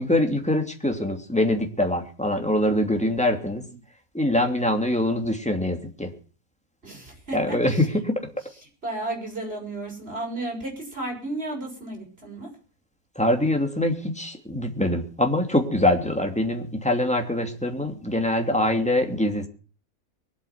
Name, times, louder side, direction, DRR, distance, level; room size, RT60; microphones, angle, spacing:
voice 1, 0.0-3.7 4.1-6.1 7.3-8.3 13.2-19.5, left 1 dB, 5° left, 4 dB, 2.7 m, -24 dB
voice 2, 6.8-7.9 8.8-12.5, right 2 dB, 45° right, 0 dB, 6.7 m, -33 dB
23.0 x 8.7 x 5.9 m, 0.38 s
omnidirectional pair, 1.4 m